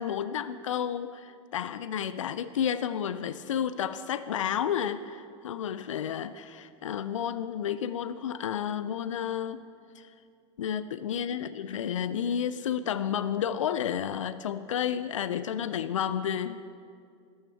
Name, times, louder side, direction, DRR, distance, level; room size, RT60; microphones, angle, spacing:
voice 1, 0.0-9.6 10.0-10.1 10.6-16.6, left 9 dB, 85° left, 13 dB, 0.4 m, -31 dB
13.0 x 12.0 x 4.5 m, 2.4 s
hypercardioid pair, 85°, 16 cm